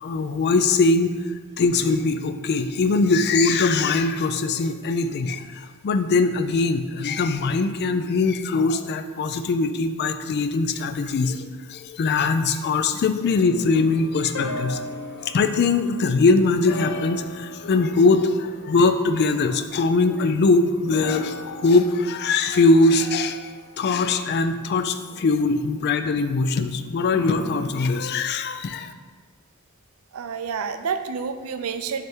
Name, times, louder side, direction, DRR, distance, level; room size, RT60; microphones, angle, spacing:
voice 1, 0.0-1.2 1.6-11.4 11.7-14.8 15.2-23.4 23.8-28.9, left 3 dB, 50° left, 9 dB, 0.3 m, -21 dB
sound 1, 13.2-16.2 16.7-25.8 27.1-27.7, left 1 dB, 85° left, 0.6 m, -38 dB
voice 2, 30.1-32.0, right 6 dB, 85° right, 9 dB, 0.4 m, -29 dB
6.2 x 3.4 x 4.4 m, 1.5 s
head